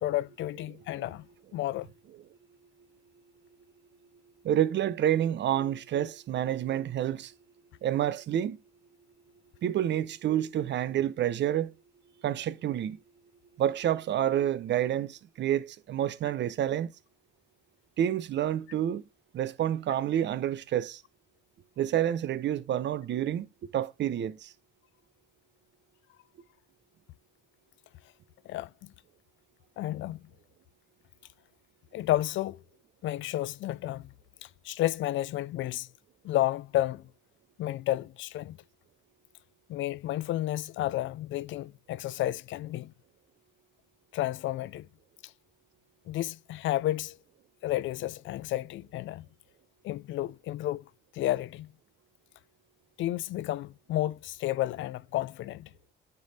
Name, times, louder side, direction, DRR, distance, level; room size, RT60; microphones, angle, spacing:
voice 1, 0.0-1.3 1.5-1.9 28.5-28.9 29.8-30.2 31.9-32.6 33.0-34.1 34.4-35.9 36.2-37.1 37.6-38.6 39.7-42.9 44.1-44.9 46.1-47.2 47.6-49.3 49.8-51.7 53.0-55.7, left 14 dB, 75° left, 0.4 m, -31 dB
voice 2, 4.4-7.3 7.8-8.6 9.6-11.7 12.2-13.0 13.6-16.9 18.0-19.1 19.3-21.0 21.8-23.5 23.7-24.5, right 11 dB, 65° right, 0.7 m, -28 dB
9.4 x 3.4 x 4.1 m
cardioid pair, 90°, 20 cm